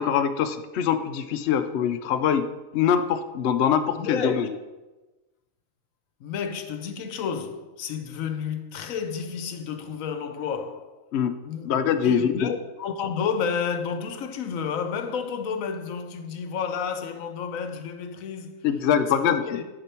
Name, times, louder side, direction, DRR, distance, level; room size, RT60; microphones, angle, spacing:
voice 1, 0.0-2.5 2.7-4.5 11.1-11.3 11.6-12.5 18.6-19.6, left 8 dB, 65° left, 0.8 m, -23 dB
voice 2, 3.9-4.4 6.2-11.1 11.4-11.7 12.0-18.7 19.1-19.6, left 6 dB, 80° left, 1.1 m, -31 dB
10.0 x 5.9 x 4.4 m
omnidirectional pair, 1.4 m